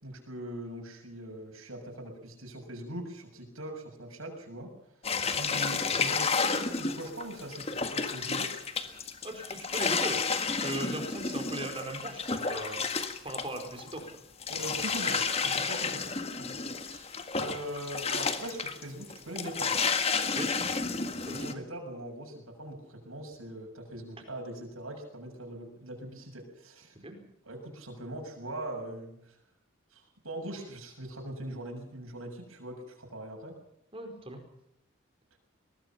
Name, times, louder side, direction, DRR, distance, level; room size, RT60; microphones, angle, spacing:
voice 1, 0.0-4.7 5.3-6.3 6.8-8.6 14.5-19.7 21.3-27.0 27.4-29.4 29.9-33.6, right 1 dB, 85° right, 1 dB, 7.0 m, -41 dB
sound 1, 5.0-14.1 14.4-21.5, left 5 dB, 30° left, 1.7 m, -31 dB
voice 2, 9.2-10.2 10.5-12.8 13.2-14.1 20.4-20.5 21.2-21.6 27.0-27.1 33.9-34.4, right 1 dB, 25° right, 5 dB, 4.6 m, -38 dB
23.0 x 20.0 x 5.9 m, 0.77 s
head